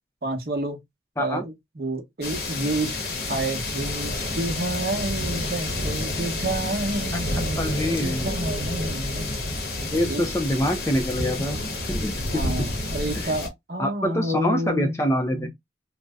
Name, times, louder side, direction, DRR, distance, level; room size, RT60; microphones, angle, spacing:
voice 1, 0.2-0.8 1.2-3.0 3.3-9.4 9.9-10.2 12.3-15.0 15.3-15.5, right 1 dB, 55° right, 0.8 m, -29 dB
sound 1, 2.2-13.5, left 2 dB, 60° left, 0.8 m, -29 dB
voice 2, 7.6-8.3 9.9-12.7 13.2-13.3 13.8-15.5, equal, 15° left, 0.4 m, -25 dB
2.6 x 2.0 x 3.3 m
head